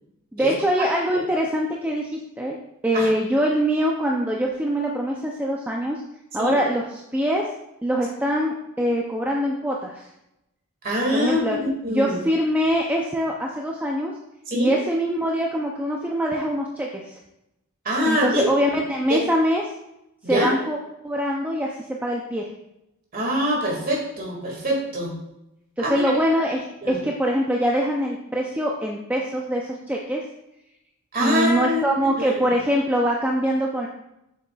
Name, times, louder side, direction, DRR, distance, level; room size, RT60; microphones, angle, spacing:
voice 1, 0.3-2.6 2.8-6.0 6.3-7.5 7.8-10.1 11.1-11.6 11.9-14.1 14.5-17.2 18.0-19.6 20.3-20.8 21.0-21.7 22.0-22.5 25.8-30.2 31.2-33.9, equal, 5° right, -1 dB, 0.4 m, -23 dB
voice 2, 10.8-11.6 11.8-12.2 14.5-14.8 17.8-18.5 19.1-19.2 20.2-20.5 23.1-25.1 25.8-26.1 26.8-27.0 31.1-32.3, equal, 40° right, -2 dB, 2.0 m, -24 dB
7.2 x 6.5 x 2.3 m, 0.87 s
head